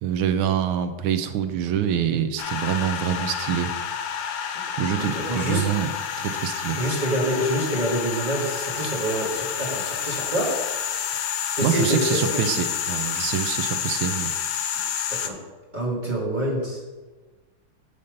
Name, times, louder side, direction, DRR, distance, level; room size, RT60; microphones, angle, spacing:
voice 1, 0.0-3.7 4.8-5.9 6.2-6.8 11.6-14.3, right 9 dB, 75° right, 9 dB, 1.3 m, -25 dB
sound 1, 2.4-15.3, left 8 dB, 80° left, 0.9 m, -29 dB
voice 2, 4.8-5.6 6.7-10.5 11.6-12.2 15.1-15.3 15.7-16.8, equal, 25° right, -5 dB, 1.6 m, -26 dB
6.7 x 5.6 x 5.1 m, 1.3 s
omnidirectional pair, 2.4 m